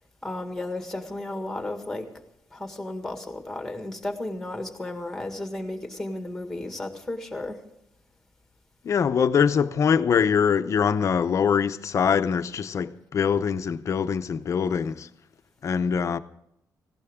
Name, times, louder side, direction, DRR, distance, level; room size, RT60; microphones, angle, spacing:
voice 1, 0.2-2.1 2.5-7.6, left 2 dB, 5° left, 1.7 m, -33 dB
voice 2, 8.8-15.1 15.6-16.2, left 7 dB, 45° left, 0.7 m, -23 dB
18.5 x 16.0 x 3.6 m
wide cardioid pair, 160°, 7 cm